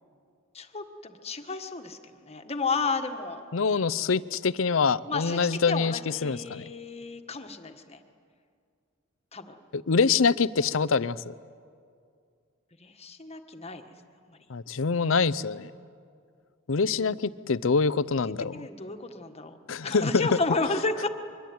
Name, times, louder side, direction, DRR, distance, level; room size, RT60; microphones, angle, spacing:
voice 1, 0.5-3.4 5.0-8.0 9.3-9.6 12.8-13.9 14.3-14.4 17.0-17.1 18.5-19.6 19.8-21.1, left 4 dB, 30° left, 6 dB, 1.6 m, -32 dB
voice 2, 3.5-6.6 9.7-11.3 14.5-15.7 16.7-18.7 19.7-20.3, left 5 dB, 75° left, 18 dB, 0.6 m, -25 dB
23.5 x 23.5 x 9.4 m, 2.3 s
head